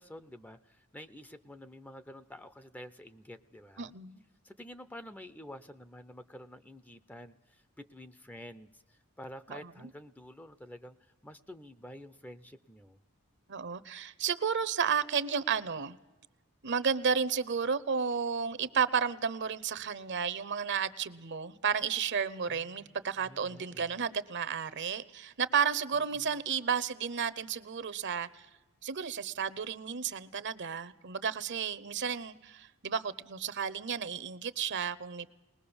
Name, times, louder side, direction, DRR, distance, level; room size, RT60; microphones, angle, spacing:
voice 1, 0.0-3.9 4.4-13.0 22.5-24.0 25.9-26.4, left 1 dB, 5° left, 13 dB, 0.6 m, -49 dB
voice 2, 3.8-4.2 9.5-9.9 13.5-16.0 16.6-28.5 28.8-35.3, right 6 dB, 55° right, 16 dB, 0.8 m, -32 dB
20.5 x 20.5 x 7.1 m, 1.2 s
head